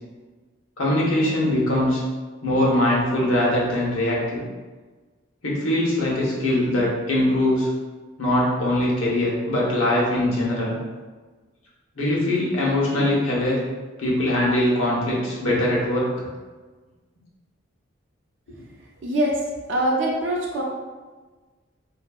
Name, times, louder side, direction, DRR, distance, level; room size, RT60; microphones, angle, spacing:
voice 1, 0.8-2.0 2.4-4.4 5.4-7.7 8.2-10.8 12.0-13.6 14.0-16.1, left 1 dB, 85° left, -5 dB, 0.8 m, -22 dB
voice 2, 19.0-19.4 19.7-20.6, right 1 dB, 60° right, -2 dB, 0.4 m, -23 dB
2.6 x 2.6 x 2.3 m, 1.3 s
head